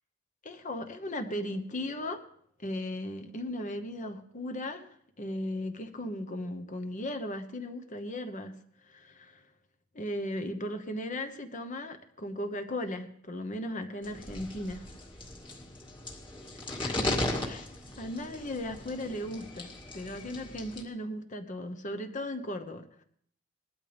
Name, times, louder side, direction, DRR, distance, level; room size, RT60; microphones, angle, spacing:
voice 1, 0.4-2.3 2.6-8.5 8.9-9.4 9.9-14.8 16.8-23.0, left 1 dB, 40° left, 8 dB, 1.1 m, -37 dB
sound 1, 14.0-20.8, left 1 dB, 25° left, 2.0 m, -37 dB
19.5 x 12.5 x 3.4 m, 0.63 s
head